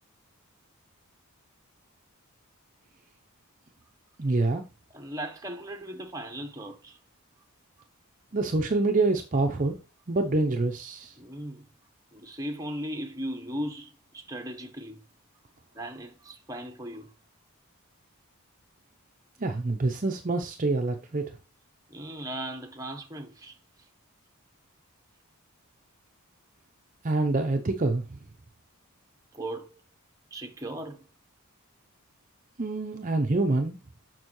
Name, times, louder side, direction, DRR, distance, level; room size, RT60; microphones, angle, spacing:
voice 1, 4.2-4.6 8.3-9.8 10.1-11.2 19.4-21.3 27.0-28.2 32.6-33.8, right 2 dB, 35° right, 0.6 m, -26 dB
voice 2, 4.9-7.0 11.2-11.6 12.1-15.0 15.7-17.1 21.9-23.6 29.3-29.7 30.3-31.0, right 1 dB, 15° right, 1.0 m, -37 dB
6.7 x 6.1 x 3.1 m
head